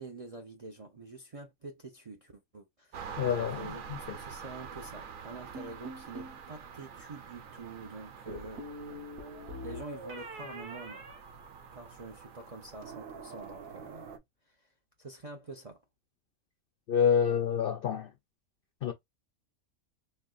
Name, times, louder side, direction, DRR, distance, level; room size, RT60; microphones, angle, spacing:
voice 1, 0.0-8.7 9.6-11.0 11.7-14.2 14.5-14.6 15.0-15.8, right 3 dB, 40° right, 0.5 m, -46 dB
sound 1, 2.9-14.2, right 6 dB, 75° right, 1.1 m, -46 dB
voice 2, 3.2-3.6 3.9-4.2 16.9-18.1 18.8-18.9, left 8 dB, 65° left, 0.5 m, -27 dB
sound 2, 5.5-6.4 8.3-12.0, equal, 55° right, 1.4 m, -44 dB
4.3 x 3.0 x 2.3 m
omnidirectional pair, 1.4 m